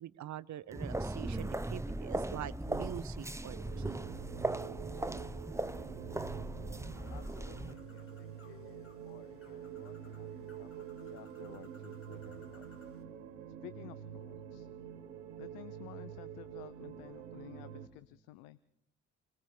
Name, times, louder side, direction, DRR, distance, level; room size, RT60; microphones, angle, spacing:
voice 1, 0.0-4.0, right 12 dB, 55° right, 17 dB, 1.0 m, -44 dB
sound 1, 0.7-7.7, right 1 dB, 10° right, 1.2 m, -38 dB
sound 2, 3.5-17.9, right 9 dB, 85° right, 1.7 m, -47 dB
Bird, 6.9-13.0, left 2 dB, 40° left, 3.8 m, -63 dB
voice 2, 7.1-12.7 13.5-14.7 15.4-18.6, left 16 dB, 75° left, 16 dB, 0.8 m, -54 dB
28.5 x 20.0 x 5.1 m, 0.77 s
hypercardioid pair, 50°, 34 cm